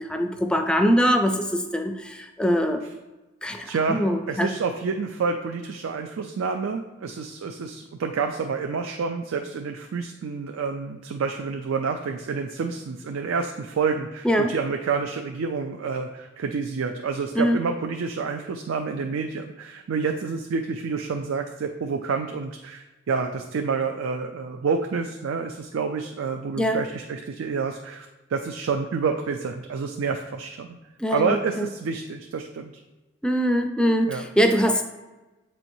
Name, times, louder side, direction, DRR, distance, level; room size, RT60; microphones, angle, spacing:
voice 1, 0.0-2.8 3.4-4.5 14.2-14.5 17.4-17.6 26.6-26.8 31.0-31.7 33.2-34.8, equal, 5° left, 5 dB, 0.4 m, -23 dB
voice 2, 3.6-30.8 31.1-32.7 34.1-34.2, right 5 dB, 80° right, 5 dB, 0.4 m, -28 dB
8.3 x 4.4 x 2.7 m, 1.1 s
head